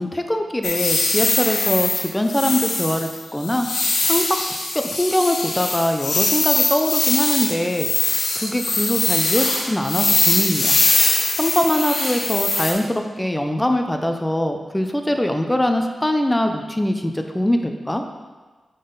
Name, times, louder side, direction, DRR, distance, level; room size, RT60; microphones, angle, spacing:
voice 1, 0.0-3.7 4.0-4.4 4.7-10.8 11.4-18.0, left 1 dB, 10° left, 5 dB, 0.6 m, -22 dB
sound 1, 0.6-12.7, left 3 dB, 75° left, 1.5 m, -21 dB
9.3 x 3.9 x 3.9 m, 1.3 s
wide cardioid pair, 90°, 0 cm